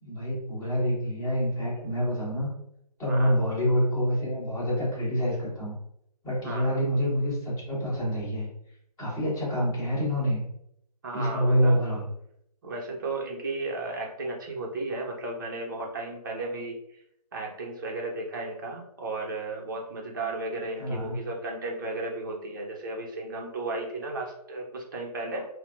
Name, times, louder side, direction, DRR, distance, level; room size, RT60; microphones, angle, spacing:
voice 1, 0.0-2.5 3.0-5.7 6.2-8.5 9.0-10.4 11.1-12.0 20.8-21.2, equal, 15° left, -10 dB, 1.5 m, -27 dB
voice 2, 3.1-3.4 6.4-6.8 11.0-11.8 12.6-16.8 17.3-25.5, right 2 dB, 30° right, -1 dB, 0.6 m, -34 dB
4.1 x 2.0 x 2.5 m, 0.74 s
figure-of-eight pair, 145°, 21 cm